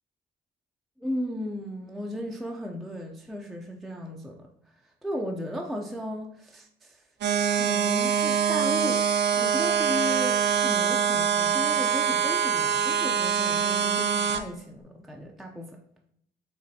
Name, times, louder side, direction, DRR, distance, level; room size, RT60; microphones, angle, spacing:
voice 1, 1.0-4.5 5.0-9.0 9.3-15.7, left 1 dB, ahead, 0 dB, 0.4 m, -35 dB
sound 1, 7.2-14.4, right 7 dB, 60° right, 0.5 m, -24 dB
5.1 x 3.1 x 2.7 m, 0.70 s
cardioid pair, 90°, 20 cm